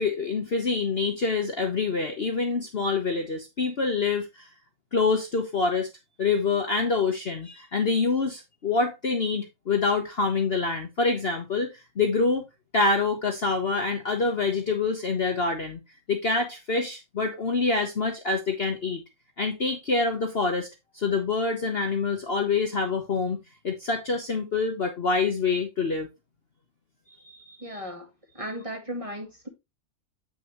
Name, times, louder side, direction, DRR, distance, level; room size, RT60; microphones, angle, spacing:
voice 1, 0.0-4.5 4.9-5.9 6.2-12.4 12.7-15.8 16.1-19.0 19.4-20.7 20.9-23.4 23.6-26.1 27.3-27.8, left 4 dB, 40° left, 1.1 m, -26 dB
voice 2, 27.6-28.1 28.3-29.5, equal, 20° right, 1.9 m, -35 dB
8.2 x 6.1 x 3.0 m
omnidirectional pair, 1.8 m